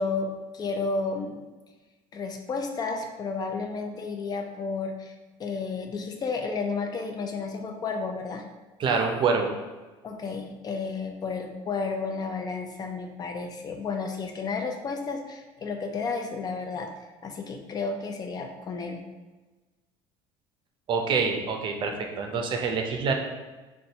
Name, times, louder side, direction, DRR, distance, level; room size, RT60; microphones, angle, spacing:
voice 1, 0.0-1.4 2.1-5.1 5.4-8.4 10.0-16.9 17.2-19.0, left 4 dB, 35° left, 4 dB, 0.5 m, -32 dB
voice 2, 8.8-9.5 20.9-23.1, right 5 dB, 45° right, 4 dB, 0.6 m, -26 dB
2.6 x 2.3 x 4.0 m, 1.2 s
supercardioid pair, 100°, 12 cm